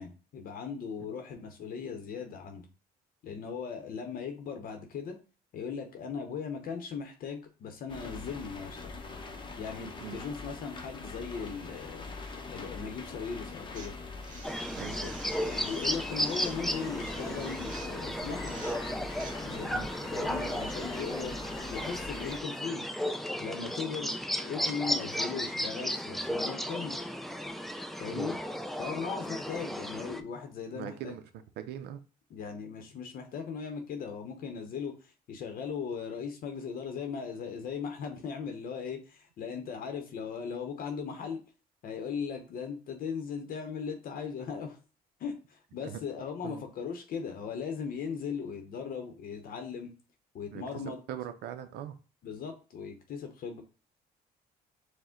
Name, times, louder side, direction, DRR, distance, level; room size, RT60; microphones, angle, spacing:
voice 1, 0.0-2.6 3.2-5.2 5.5-8.9 9.6-12.1 12.5-13.9 14.9-18.6 19.4-19.8 20.1-21.4 21.7-23.0 23.4-24.1 24.4-27.0 28.0-28.4 28.8-31.2 32.3-41.4 41.8-44.8 45.2-49.9 50.3-51.0 52.2-53.6, left 6 dB, 60° left, 5 dB, 0.8 m, -38 dB
sound 1, 7.9-22.4, left 3 dB, 30° left, 0.7 m, -43 dB
sound 2, 13.7-19.3, right 4 dB, 50° right, 1.0 m, -49 dB
sound 3, 14.4-30.2, equal, ahead, 0.4 m, -34 dB
voice 2, 30.7-31.2 31.6-32.0 45.8-46.0 46.4-46.6 50.5-50.6 51.1-52.0, right 10 dB, 80° right, 8 dB, 0.5 m, -40 dB
4.9 x 2.1 x 3.7 m, 0.35 s
cardioid pair, 110°, 17 cm